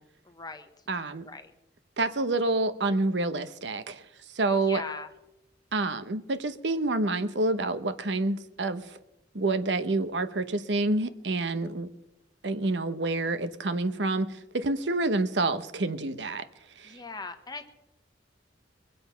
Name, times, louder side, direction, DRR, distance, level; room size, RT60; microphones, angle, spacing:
voice 1, 0.2-0.7 1.2-1.5 4.6-5.1 16.8-17.7, left 4 dB, 20° left, 8 dB, 1.1 m, -40 dB
voice 2, 0.9-1.3 2.0-4.0 4.3-4.8 5.7-9.0 9.3-11.9 12.4-16.4 16.8-17.0, right 2 dB, 75° right, 11 dB, 0.9 m, -28 dB
23.0 x 7.8 x 5.7 m, 0.92 s
head